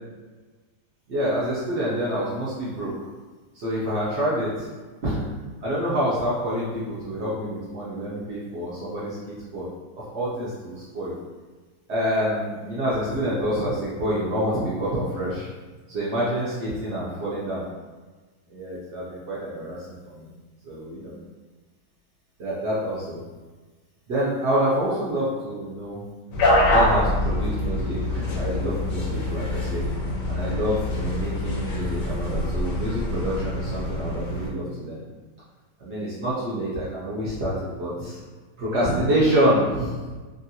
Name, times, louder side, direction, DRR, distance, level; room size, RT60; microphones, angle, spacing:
voice 1, 1.1-3.1 3.5-4.7 5.0-5.2 5.6-9.7 10.1-11.1 11.9-15.5 15.9-17.7 18.5-20.3 20.6-21.1 22.4-23.2 24.1-26.0 26.7-29.9 30.3-35.0 35.8-38.2 38.6-39.9, equal, 65° right, -8 dB, 0.6 m, -27 dB
sound 1, 26.3-34.5, left 1 dB, 65° left, 0.8 m, -25 dB
3.0 x 2.5 x 2.7 m, 1.3 s
omnidirectional pair, 1.9 m